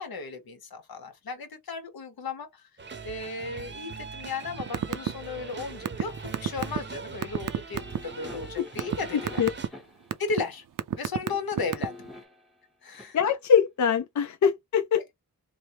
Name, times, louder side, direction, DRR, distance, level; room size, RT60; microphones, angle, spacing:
voice 1, 0.0-2.7 3.0-9.4 10.2-10.6 11.0-12.0 12.8-13.2, left 4 dB, 75° left, 1.0 m, -35 dB
sound 1, 2.8-9.7, right 5 dB, 30° right, 0.7 m, -41 dB
sound 2, 4.6-5.1 5.4-8.0 8.5-9.0 9.3-9.7 10.1-10.4 10.8-12.1, right 10 dB, 60° right, 0.5 m, -27 dB
sound 3, 7.8-10.1 11.3-12.4 12.9-13.1, left 1 dB, ahead, 1.0 m, -45 dB
voice 2, 9.1-9.5 13.1-15.1, left 7 dB, 50° left, 0.5 m, -23 dB
3.3 x 2.1 x 2.8 m
cardioid pair, 60°, 37 cm